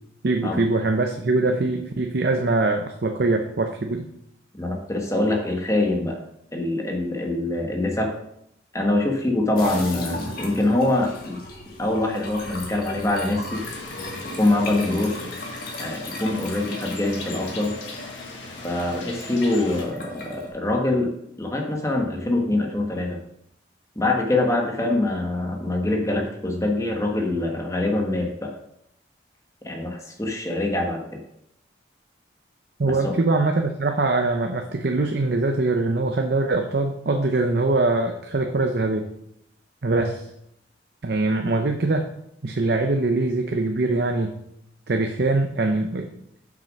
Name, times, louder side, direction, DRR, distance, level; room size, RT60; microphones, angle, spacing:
voice 1, 0.2-4.1 32.8-39.1 39.8-40.3 41.0-42.1 42.4-44.4 44.9-46.1, right 2 dB, 55° right, 4 dB, 0.6 m, -23 dB
voice 2, 4.5-6.2 6.5-8.1 8.7-11.4 11.8-13.6 14.4-15.3 15.8-17.8 18.6-21.1 21.4-23.2 23.9-28.6 29.6-31.2 32.8-33.2, left 2 dB, 15° left, 2 dB, 1.2 m, -24 dB
sound 1, 9.6-20.5, left 2 dB, 50° left, 1.8 m, -37 dB
sound 2, 13.5-19.9, left 3 dB, 85° left, 1.8 m, -40 dB
7.3 x 6.1 x 5.2 m, 0.76 s
head